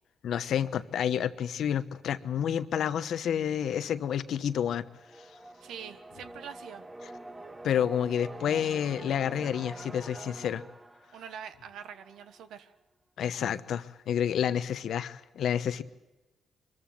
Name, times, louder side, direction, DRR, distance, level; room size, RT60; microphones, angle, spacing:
voice 1, 0.2-4.8 7.6-10.6 13.2-15.8, left 9 dB, 75° left, 13 dB, 1.0 m, -29 dB
sound 1, 4.5-12.2, right 1 dB, 25° right, 1.8 m, -46 dB
voice 2, 5.6-6.8 11.1-12.7, right 8 dB, 85° right, 11 dB, 1.3 m, -44 dB
24.5 x 14.5 x 9.2 m, 1.1 s
cardioid pair, 70°, 0 cm